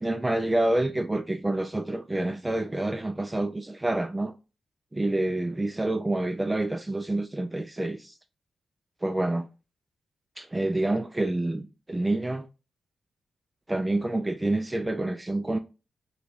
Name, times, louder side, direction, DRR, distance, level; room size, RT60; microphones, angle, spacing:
voice 1, 0.0-4.3 4.9-8.1 9.0-9.5 10.4-12.5 13.7-15.6, right 2 dB, 20° right, 0.3 m, -28 dB
3.0 x 2.2 x 4.0 m
cardioid pair, 60°, 0 cm